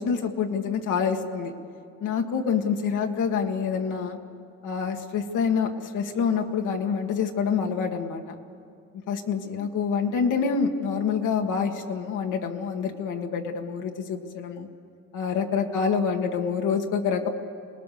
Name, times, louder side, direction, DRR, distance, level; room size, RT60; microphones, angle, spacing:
voice 1, 0.0-1.5 2.0-4.2 4.6-8.4 9.1-14.7 15.1-17.3, left 6 dB, 85° left, 3 dB, 2.0 m, -26 dB
28.0 x 19.5 x 6.8 m, 2.4 s
cardioid pair, 90°, 30 cm